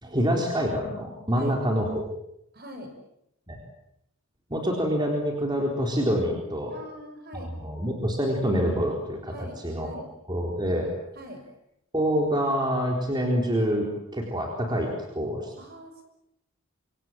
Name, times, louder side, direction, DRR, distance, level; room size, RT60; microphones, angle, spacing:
voice 1, 0.0-2.0 3.5-3.6 4.5-6.7 7.3-9.9 10.3-10.9 11.9-15.5, equal, 20° right, 1 dB, 4.0 m, -26 dB
voice 2, 2.5-2.9 6.7-7.5 9.3-10.1 11.1-11.4 15.6-16.1, equal, 45° right, 6 dB, 6.2 m, -42 dB
27.0 x 26.0 x 7.7 m, 0.78 s
head